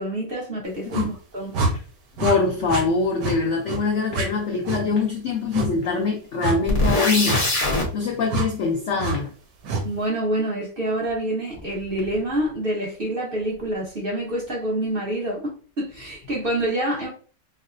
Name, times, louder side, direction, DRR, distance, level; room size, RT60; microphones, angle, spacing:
voice 1, 0.0-1.5 9.8-17.1, right 1 dB, 40° right, 1.1 m, -27 dB
voice 2, 0.7-1.1 1.7-1.8 2.2-7.4 7.9-9.3, left 4 dB, 75° left, 0.6 m, -23 dB
sound 1, 0.9-1.1 1.5-1.7 2.2-2.4 2.7-2.8 3.2-3.4 3.7-3.8 4.1-4.3 4.6-4.8 5.5-5.7 6.4-6.6 7.3-7.4 8.3-8.5 9.0-9.2 9.6-9.8, right 3 dB, 85° right, 1.4 m, -25 dB
sound 2, 6.7-7.9, left 1 dB, 40° left, 0.9 m, -21 dB
4.6 x 2.0 x 2.5 m
omnidirectional pair, 1.8 m